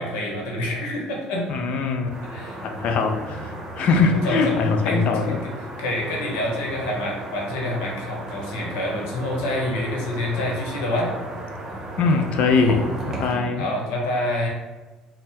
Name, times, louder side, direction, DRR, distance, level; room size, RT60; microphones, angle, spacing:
voice 1, 0.0-1.5 2.3-2.6 4.2-4.4 4.8-5.1 5.4-5.5 5.8-11.1 13.2-14.5, left 1 dB, 85° left, -1 dB, 0.9 m, -27 dB
voice 2, 1.5-2.1 2.6-5.4 12.0-13.7, left 4 dB, 60° left, 4 dB, 0.5 m, -22 dB
sound 1, 2.1-13.3, right 2 dB, 25° right, 1.0 m, -35 dB
4.3 x 2.1 x 3.4 m, 1.2 s
supercardioid pair, 85°, 2 cm